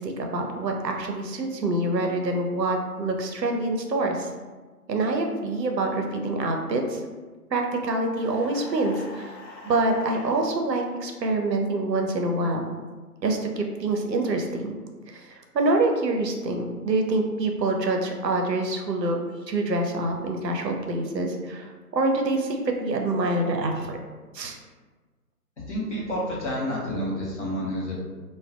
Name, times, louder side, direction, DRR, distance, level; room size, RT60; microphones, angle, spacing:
voice 1, 0.0-4.3 4.9-7.0 7.5-9.3 9.6-12.8 13.2-14.7 15.1-19.2 19.5-24.0 24.3-24.6, right 2 dB, 85° right, 3 dB, 0.6 m, -26 dB
sound 1, 8.1-10.4, left 2 dB, 80° left, 0.7 m, -43 dB
voice 2, 25.7-27.9, equal, 45° left, -6 dB, 0.8 m, -29 dB
2.3 x 2.2 x 2.4 m, 1.4 s
figure-of-eight pair, 145°, 49 cm